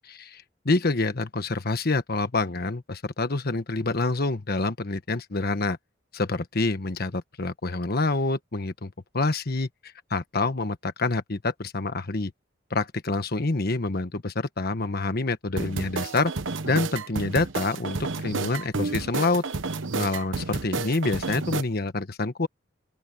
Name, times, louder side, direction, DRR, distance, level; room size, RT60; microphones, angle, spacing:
voice 1, 0.1-5.8 6.1-12.3 12.7-16.3 16.7-19.4 19.9-22.5, left 3 dB, 55° left, 1.3 m, -27 dB
sound 1, 15.6-21.6, right 3 dB, 85° right, 1.1 m, -31 dB
open air
head